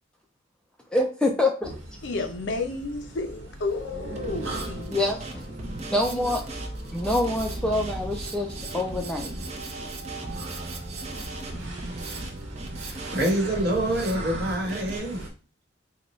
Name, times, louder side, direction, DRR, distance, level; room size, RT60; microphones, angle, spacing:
voice 1, 0.9-1.7 4.9-5.5 5.9-6.4 6.9-9.3, left 1 dB, 5° left, 2 dB, 0.4 m, -26 dB
sound 1, 1.6-15.3, right 1 dB, 85° right, 1.0 m, -39 dB
voice 2, 2.0-5.0, left 3 dB, 70° left, 6 dB, 0.6 m, -31 dB
Drum kit, 4.2-15.0, right 2 dB, 35° right, 0.6 m, -37 dB
voice 3, 13.1-15.2, right 1 dB, 55° right, -1 dB, 1.2 m, -26 dB
3.9 x 2.2 x 3.0 m, 0.36 s
head